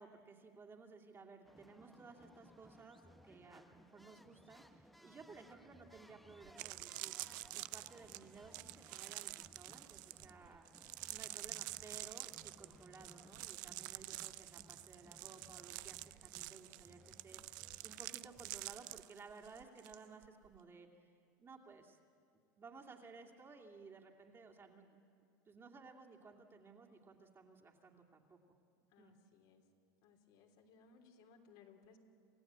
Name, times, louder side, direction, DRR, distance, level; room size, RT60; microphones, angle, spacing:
voice 1, 0.0-10.7 11.1-21.1 21.4-22.0 22.6-25.0 25.5-28.6 29.0-29.1, right 4 dB, 25° right, 0 dB, 2.6 m, -57 dB
sound 1, 1.4-19.0, equal, ahead, 0.7 m, -63 dB
sound 2, 6.0-6.1 6.4-20.0 20.2-20.6, right 20 dB, 70° right, 0.5 m, -48 dB
voice 2, 28.9-29.6 30.0-32.0, left 6 dB, 65° left, 2 dB, 3.3 m, -64 dB
28.0 x 15.5 x 8.8 m, 2.5 s
supercardioid pair, 120°, 10 cm